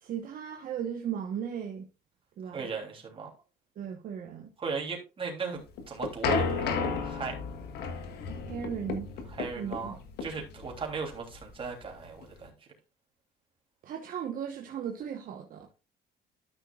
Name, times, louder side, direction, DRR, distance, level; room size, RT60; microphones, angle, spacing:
voice 1, 0.0-1.9 2.4-2.7 3.8-4.5 8.4-9.1 9.6-10.0 13.8-15.7, right 8 dB, 55° right, 1.2 m, -36 dB
voice 2, 2.5-3.3 4.6-5.6 5.9-7.3 9.3-12.5, right 5 dB, 30° right, 3.1 m, -37 dB
sound 1, 5.6-12.4, left 5 dB, 75° left, 1.5 m, -33 dB
12.5 x 6.0 x 2.4 m
cardioid pair, 110°, 17 cm